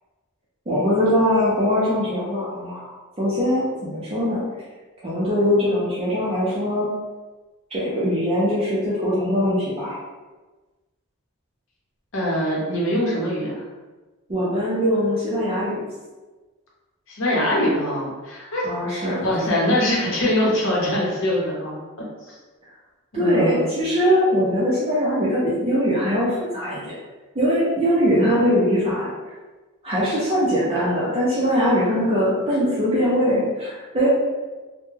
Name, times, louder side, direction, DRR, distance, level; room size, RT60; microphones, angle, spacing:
voice 1, 0.7-4.4 5.0-6.9 7.7-10.0 14.3-15.8 18.6-19.2 23.1-26.9 27.3-29.1 29.8-34.1, equal, 25° right, -8 dB, 0.5 m, -21 dB
voice 2, 12.1-13.6 17.1-21.8 22.3-22.4 23.1-23.7, left 1 dB, 60° left, -5 dB, 0.8 m, -23 dB
2.2 x 2.1 x 3.1 m, 1.2 s
head